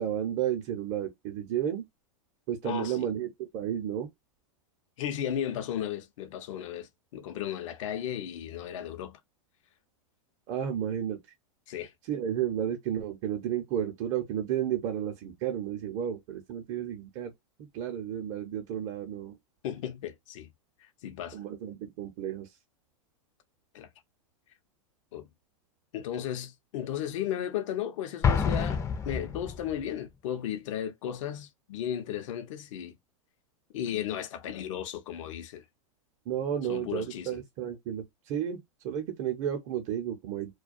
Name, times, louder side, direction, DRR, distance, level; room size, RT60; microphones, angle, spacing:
voice 1, 0.0-1.9 2.5-4.1 10.5-11.2 12.1-17.3 17.6-19.4 21.3-22.5 36.3-40.6, right 10 dB, 45° right, 0.7 m, -32 dB
voice 2, 2.6-3.1 5.0-9.2 11.7-11.9 19.6-20.5 20.8-21.4 23.7-23.9 25.1-25.3 25.9-33.0 33.7-35.7 36.7-37.4, left 10 dB, 65° left, 0.7 m, -35 dB
Explosion, 28.2-29.8, left 6 dB, 20° left, 0.5 m, -28 dB
2.3 x 2.2 x 2.6 m
hypercardioid pair, 120°, 17 cm